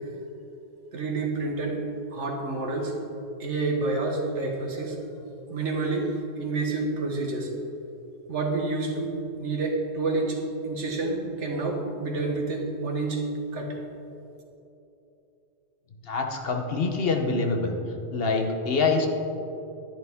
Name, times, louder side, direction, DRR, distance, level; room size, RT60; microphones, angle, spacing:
voice 1, 0.9-1.8 2.1-3.0 3.4-5.0 5.5-7.5 8.3-13.2 13.5-13.8, right 3 dB, 85° right, 2 dB, 1.6 m, -28 dB
voice 2, 16.0-17.8 18.1-19.1, left 4 dB, 60° left, 3 dB, 1.1 m, -25 dB
11.0 x 10.5 x 3.6 m, 2.9 s
omnidirectional pair, 1.2 m